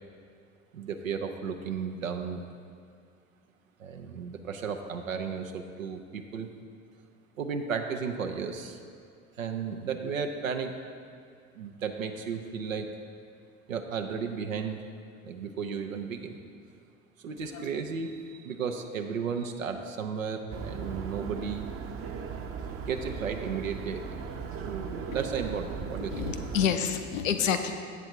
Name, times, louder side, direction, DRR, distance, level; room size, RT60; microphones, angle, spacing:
voice 1, 0.7-2.4 3.8-6.5 7.4-8.8 9.4-10.7 11.6-12.9 13.7-14.8 15.2-16.4 17.2-21.7 22.9-24.3 24.6-26.3, right 6 dB, 90° right, 5 dB, 0.5 m, -34 dB
voice 2, 17.4-17.7 26.1-27.7, left 7 dB, 80° left, 7 dB, 0.6 m, -28 dB
sound 1, 20.5-26.7, right 6 dB, 35° right, 0.7 m, -38 dB
8.0 x 6.9 x 4.4 m, 2.3 s
figure-of-eight pair, 60°, 39 cm